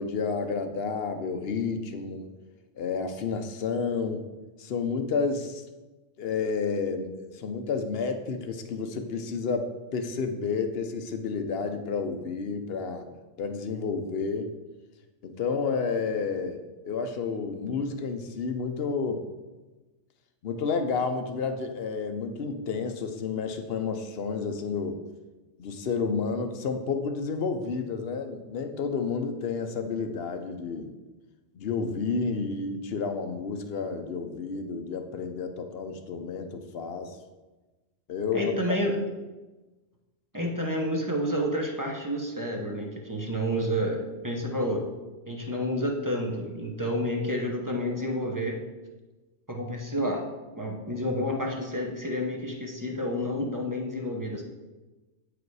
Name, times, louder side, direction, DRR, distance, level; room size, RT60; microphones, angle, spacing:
voice 1, 0.0-2.3 2.8-4.2 4.6-5.6 6.2-13.1 13.4-14.5 15.2-16.6 16.9-19.3 20.4-25.0 25.6-30.9 31.5-37.1 38.1-38.8, left 5 dB, 60° left, 7 dB, 0.9 m, -30 dB
voice 2, 38.3-39.0 40.3-44.8 45.3-48.6 49.5-50.2 50.6-54.4, equal, 15° right, 0 dB, 0.9 m, -29 dB
8.6 x 5.1 x 4.7 m, 1.2 s
omnidirectional pair, 1.3 m